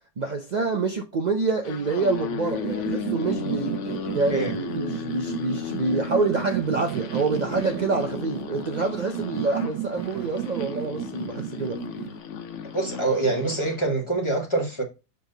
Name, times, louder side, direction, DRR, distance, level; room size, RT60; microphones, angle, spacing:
voice 1, 0.2-3.8 4.1-11.8, right 3 dB, 60° right, 0.4 m, -27 dB
sound 1, 1.5-13.8, left 7 dB, 55° left, 0.9 m, -35 dB
sound 2, 2.4-12.2, right 13 dB, 75° right, 1.1 m, -33 dB
voice 2, 12.7-14.8, right 2 dB, 20° left, 1.7 m, -25 dB
6.8 x 3.6 x 3.8 m
omnidirectional pair, 1.7 m